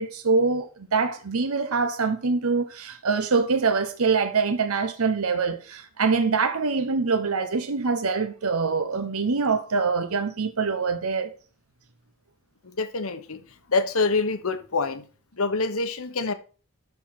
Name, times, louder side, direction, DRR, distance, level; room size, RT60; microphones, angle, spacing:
voice 1, 0.0-11.3, right 4 dB, 80° right, 0.8 m, -24 dB
voice 2, 12.8-13.4 13.7-15.0 15.4-16.3, left 3 dB, 75° left, 1.2 m, -25 dB
12.0 x 4.6 x 5.9 m
head